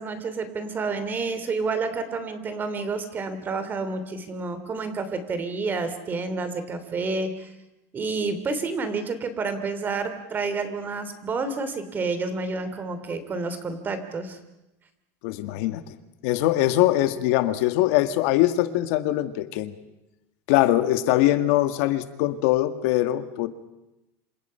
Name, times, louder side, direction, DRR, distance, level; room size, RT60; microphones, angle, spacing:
voice 1, 0.0-7.5 7.9-14.4, right 4 dB, 25° right, 10 dB, 2.9 m, -29 dB
voice 2, 15.2-15.8 16.2-19.8 20.5-23.5, left 15 dB, 65° left, 10 dB, 1.6 m, -22 dB
27.5 x 26.0 x 5.7 m, 0.97 s
supercardioid pair, 145°, 8 cm